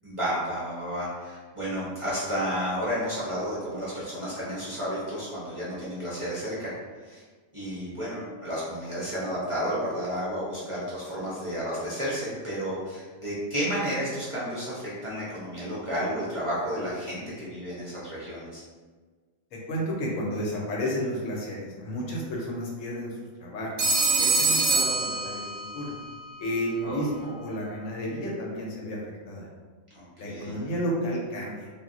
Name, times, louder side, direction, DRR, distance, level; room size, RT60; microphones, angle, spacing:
voice 1, 0.0-6.7 7.0-7.2 7.5-18.6 26.8-27.0 29.9-30.6, equal, 40° right, -9 dB, 0.4 m, -32 dB
voice 2, 19.5-23.1 23.4-23.7 24.2-25.9 26.4-29.0 29.3-29.5 30.2-31.7, equal, 70° left, -3 dB, 1.0 m, -32 dB
Telephone, 23.8-25.9, right 3 dB, 65° right, 0.8 m, -24 dB
2.3 x 2.1 x 3.7 m, 1.4 s
omnidirectional pair, 1.4 m